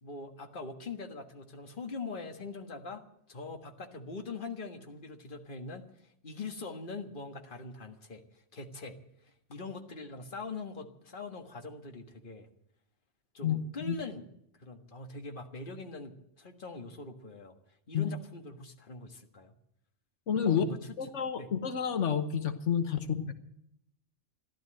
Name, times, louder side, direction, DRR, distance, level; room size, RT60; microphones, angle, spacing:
voice 1, 0.0-3.0 3.3-9.0 9.2-12.5 13.3-14.2 14.6-17.5 17.9-19.5 20.4-20.9 21.4-21.5, left 3 dB, 45° left, 5 dB, 1.7 m, -42 dB
voice 2, 20.3-20.6 21.0-23.3, left 8 dB, 85° left, 8 dB, 1.4 m, -29 dB
15.0 x 12.0 x 7.7 m, 0.76 s
omnidirectional pair, 1.2 m